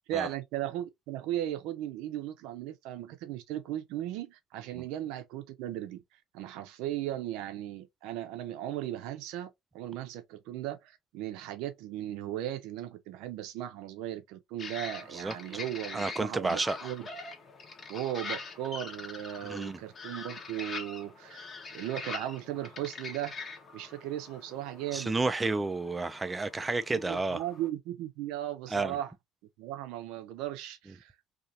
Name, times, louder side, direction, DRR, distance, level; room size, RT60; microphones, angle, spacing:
voice 1, 0.1-6.0 6.3-17.1 17.9-21.5 21.7-23.3 23.7-25.2 26.9-29.1 29.6-31.1, right 12 dB, 65° right, 0.6 m, -37 dB
sound 1, 14.6-27.7, left 4 dB, 35° left, 0.8 m, -44 dB
voice 2, 15.9-16.9 19.4-19.8 24.9-27.4 28.7-29.0, right 3 dB, 20° right, 0.4 m, -31 dB
2.8 x 2.4 x 2.5 m
hypercardioid pair, 60°, 0 cm